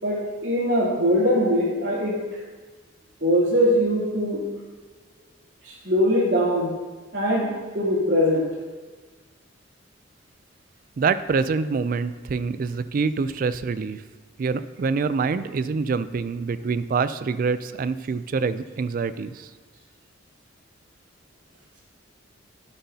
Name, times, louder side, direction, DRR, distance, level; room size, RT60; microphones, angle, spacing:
voice 1, 0.0-2.4 3.2-4.4 5.6-6.7 7.1-8.5, equal, 65° right, -7 dB, 3.2 m, -22 dB
voice 2, 11.0-14.0 14.4-19.5, right 5 dB, 45° right, 13 dB, 0.3 m, -25 dB
12.0 x 8.0 x 2.8 m, 1.3 s
head